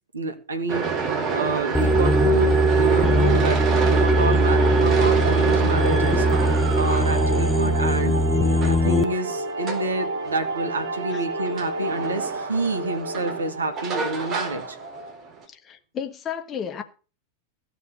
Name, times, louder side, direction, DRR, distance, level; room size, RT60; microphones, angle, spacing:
voice 1, 0.1-14.8, right 2 dB, 75° right, 2.1 m, -28 dB
sound 1, 0.7-15.4, right 5 dB, 30° right, 4.3 m, -29 dB
sound 2, 1.7-9.0, right 1 dB, 10° left, 0.9 m, -20 dB
sound 3, 4.1-15.1, right 2 dB, 55° right, 1.2 m, -32 dB
voice 2, 15.5-16.8, left 8 dB, 25° left, 1.5 m, -33 dB
16.0 x 6.0 x 7.1 m
figure-of-eight pair, 90°, 0 cm